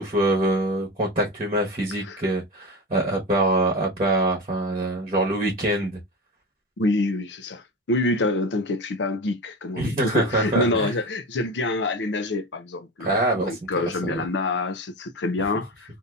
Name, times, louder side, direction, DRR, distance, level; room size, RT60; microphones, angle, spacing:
voice 1, 0.0-6.0 9.8-10.9 13.0-13.5 14.0-14.2, right 1 dB, 35° right, 1.0 m, -24 dB
voice 2, 6.8-16.0, left 2 dB, 90° left, 0.6 m, -27 dB
2.7 x 2.7 x 3.3 m
head